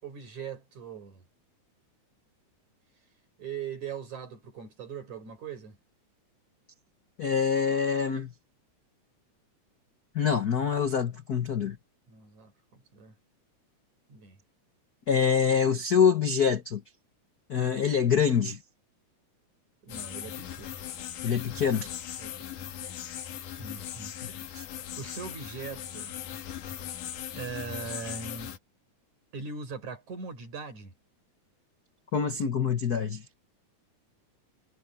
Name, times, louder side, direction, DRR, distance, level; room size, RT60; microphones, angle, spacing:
voice 1, 0.0-1.3 3.4-5.8 12.1-13.2 14.1-14.4 19.8-20.8 22.2-22.8 23.6-24.2 25.0-26.1 27.3-28.6 29.3-30.9, right 6 dB, 65° right, 5.8 m, -40 dB
voice 2, 7.2-8.3 10.1-11.8 15.1-16.8 17.5-18.6 21.2-21.9 24.5-24.6 32.1-33.2, left 7 dB, 60° left, 0.9 m, -25 dB
sound 1, 19.9-28.6, left 10 dB, 90° left, 3.1 m, -39 dB
omnidirectional pair, 3.6 m